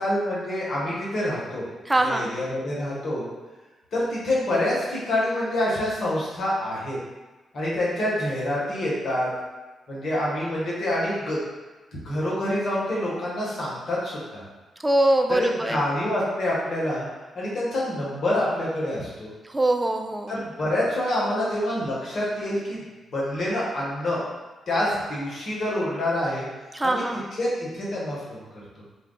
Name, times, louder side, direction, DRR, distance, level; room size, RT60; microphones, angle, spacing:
voice 1, 0.0-1.6 2.0-3.3 3.9-7.0 7.5-9.3 9.9-11.4 12.0-14.4 15.3-17.1 17.3-19.3 20.3-22.8 23.1-24.2 24.7-26.5 26.8-27.0 27.3-28.4, left 1 dB, 60° left, -6 dB, 1.0 m, -26 dB
voice 2, 1.9-2.3 14.8-15.8 19.5-20.4 26.7-27.2, right 1 dB, 20° right, 4 dB, 0.4 m, -23 dB
2.3 x 2.2 x 3.8 m, 1.2 s
hypercardioid pair, 45°, 0 cm